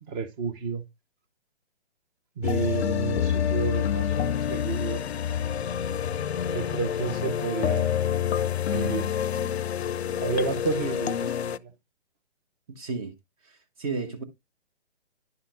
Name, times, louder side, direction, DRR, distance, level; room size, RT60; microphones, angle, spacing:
voice 1, 0.1-0.8 2.4-5.0 6.5-8.0 8.7-9.1 9.4-9.5 10.2-11.7, right 5 dB, 20° right, 0.7 m, -31 dB
sound 1, 2.4-11.6, left 9 dB, 75° left, 0.5 m, -27 dB
voice 2, 12.7-13.1 13.4-14.2, right 4 dB, 35° right, 1.2 m, -33 dB
10.5 x 5.6 x 2.5 m
hypercardioid pair, 140°, 33 cm